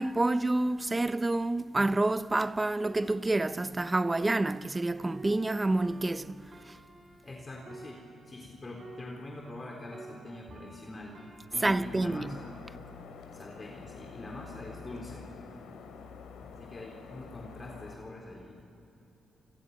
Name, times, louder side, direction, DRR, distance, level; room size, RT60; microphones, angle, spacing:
voice 1, 0.0-6.5 11.6-12.3, right 2 dB, 20° right, 0.6 m, -28 dB
sound 1, 2.8-9.7 9.9-13.5 14.1-14.4, right 2 dB, 40° right, 6.6 m, -52 dB
voice 2, 7.2-11.1 11.5-12.6 13.3-15.7 16.4-18.6, left 2 dB, 25° left, 3.9 m, -44 dB
sound 2, 11.5-18.0, left 6 dB, 90° left, 2.7 m, -48 dB
30.0 x 28.0 x 5.6 m
cardioid pair, 100°, 0 cm